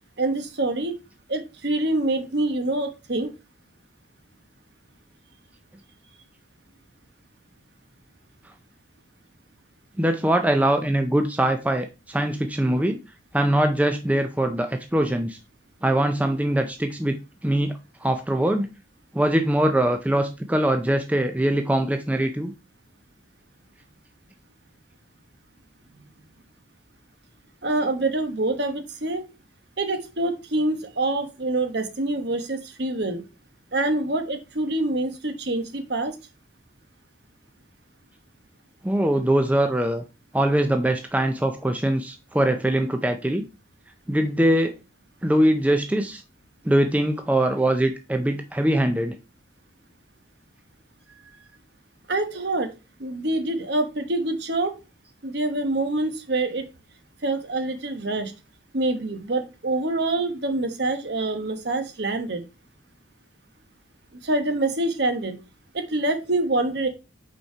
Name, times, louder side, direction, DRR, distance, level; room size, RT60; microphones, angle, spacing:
voice 1, 0.2-0.9 1.3-3.3 27.6-29.2 29.8-33.2 33.7-36.1 52.1-52.7 53.0-54.7 55.2-56.6 57.2-58.3 58.7-62.4 64.2-65.4 65.7-66.9, right 2 dB, 55° right, 8 dB, 1.1 m, -25 dB
voice 2, 10.0-13.0 13.3-15.4 15.8-18.7 19.1-22.5 38.8-40.0 40.3-43.5 44.1-44.8 45.2-46.2 46.6-49.2, right 1 dB, 5° right, 6 dB, 0.4 m, -22 dB
5.5 x 4.3 x 4.5 m, 0.29 s
head